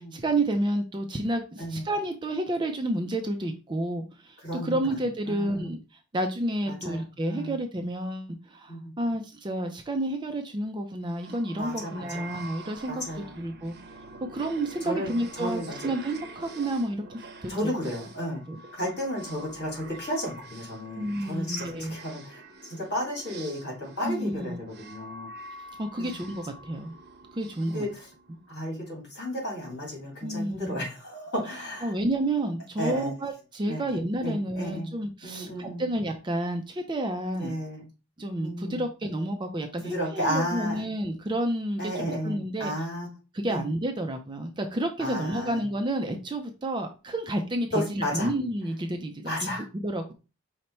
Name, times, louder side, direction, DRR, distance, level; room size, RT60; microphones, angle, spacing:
voice 1, 0.0-13.0 13.4-13.7 14.3-17.7 18.5-18.6 20.9-21.9 24.0-24.6 25.8-26.9 27.3-27.9 30.2-30.8 31.8-37.6 38.2-42.7 43.3-50.1, right 1 dB, 20° right, 5 dB, 0.4 m, -30 dB
voice 2, 5.3-5.7 6.7-7.5 8.7-8.9 11.6-12.3 12.9-13.4 14.8-15.1 15.4-15.9 17.5-18.4 18.7-25.3 26.0-26.1 27.7-27.9 28.5-31.9 32.8-33.1 33.7-34.9 35.2-35.8 37.4-37.8 38.4-38.8 39.8-40.9 41.8-43.1 43.5-43.6 45.0-45.5 47.7-48.3 49.2-49.6, equal, 50° left, -2 dB, 2.2 m, -33 dB
sound 1, 11.0-28.7, right 2 dB, 45° right, 0.7 m, -46 dB
5.2 x 2.1 x 4.3 m, 0.31 s
head